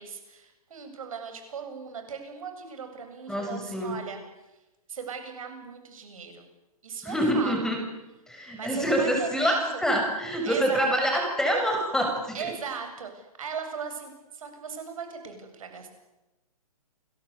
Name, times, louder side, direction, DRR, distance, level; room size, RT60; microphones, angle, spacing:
voice 1, 0.0-4.2 4.9-6.5 6.8-7.5 8.5-9.6 10.4-10.9 12.3-15.9, right 6 dB, 60° right, 6 dB, 7.9 m, -38 dB
voice 2, 3.3-3.9 7.0-7.8 8.3-12.3, equal, 5° left, 3 dB, 6.5 m, -26 dB
30.0 x 23.0 x 8.3 m, 1.0 s
figure-of-eight pair, 130°, 19 cm